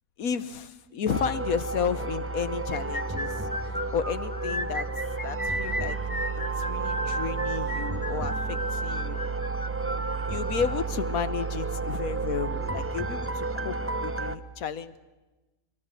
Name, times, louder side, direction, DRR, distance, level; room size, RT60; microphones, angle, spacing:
voice 1, 0.2-4.9 5.2-6.0 6.3-9.2 10.3-15.0, left 7 dB, 90° left, 13 dB, 1.5 m, -32 dB
sound 1, 1.1-14.4, right 3 dB, 15° right, 0.5 m, -31 dB
sound 2, 2.7-10.7, left 1 dB, 15° left, 0.9 m, -34 dB
22.5 x 22.0 x 7.7 m, 1.1 s
omnidirectional pair, 1.4 m